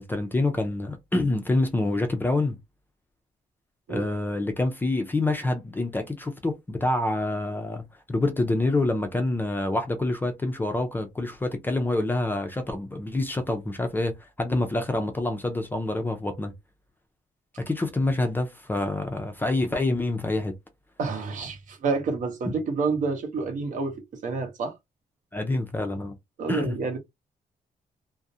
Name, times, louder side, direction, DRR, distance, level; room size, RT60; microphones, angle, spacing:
voice 1, 0.0-2.6 3.9-16.5 17.6-20.5 25.3-26.1 26.5-26.8, left 2 dB, 15° left, 0.4 m, -27 dB
voice 2, 21.0-24.7 26.4-27.0, right 4 dB, 60° right, 0.8 m, -29 dB
2.4 x 2.0 x 2.6 m
wide cardioid pair, 170°, 15 cm